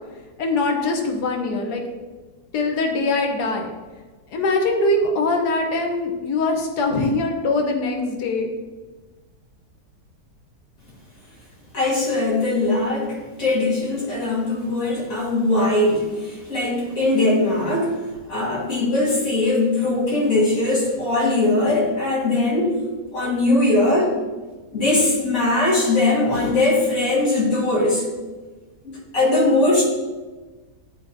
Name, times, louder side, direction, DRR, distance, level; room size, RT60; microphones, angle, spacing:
voice 1, 0.4-1.8 2.5-3.7 4.3-8.5, left 2 dB, 75° left, 2 dB, 1.4 m, -22 dB
voice 2, 11.7-18.0 18.3-22.8 23.1-24.2 24.7-28.0 28.8-29.8, left 2 dB, 55° left, -5 dB, 2.2 m, -20 dB
11.0 x 3.8 x 2.7 m, 1.3 s
omnidirectional pair, 1.7 m